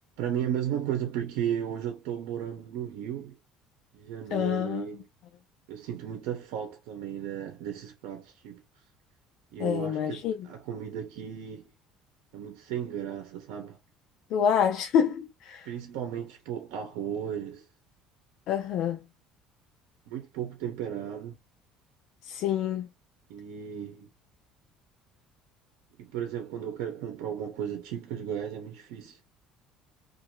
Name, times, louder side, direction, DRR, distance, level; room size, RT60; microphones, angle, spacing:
voice 1, 0.2-3.4 3.9-5.0 5.7-8.6 9.5-11.7 12.3-13.8 15.6-17.6 20.1-21.4 23.3-24.1 26.0-29.2, right 9 dB, 85° right, 0.8 m, -35 dB
voice 2, 4.3-4.9 9.6-10.4 14.3-15.7 18.5-19.0 22.3-22.9, left 8 dB, 60° left, 0.4 m, -27 dB
2.6 x 2.5 x 3.0 m
cardioid pair, 150°, 0 cm